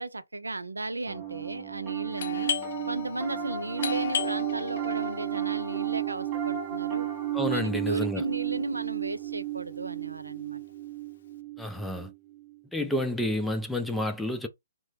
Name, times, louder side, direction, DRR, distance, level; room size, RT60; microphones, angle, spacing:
voice 1, 0.0-2.5 2.9-7.1 7.5-10.6, right 2 dB, 90° right, 0.4 m, -35 dB
Piano, 1.1-12.6, right 12 dB, 25° right, 0.8 m, -33 dB
Doorbell, 2.2-7.6, left 8 dB, 55° left, 0.6 m, -36 dB
voice 2, 7.3-8.2 11.6-12.1 12.7-14.5, left 1 dB, 5° left, 0.4 m, -30 dB
2.9 x 2.0 x 3.2 m
figure-of-eight pair, 135°, 0 cm